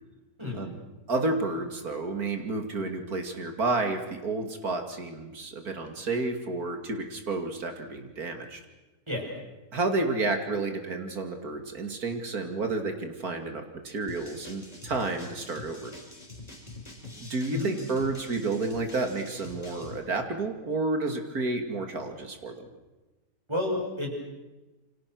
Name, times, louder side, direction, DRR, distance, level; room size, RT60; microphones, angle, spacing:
voice 1, 1.1-8.6 9.7-15.9 17.2-22.7, right 3 dB, 85° right, 5 dB, 3.1 m, -31 dB
voice 2, 9.1-9.4 17.5-17.7 23.5-24.2, left 2 dB, 20° right, -1 dB, 6.8 m, -31 dB
sound 1, 14.1-20.0, left 2 dB, 25° left, 3.7 m, -45 dB
29.0 x 25.0 x 6.3 m, 1.1 s
omnidirectional pair, 1.5 m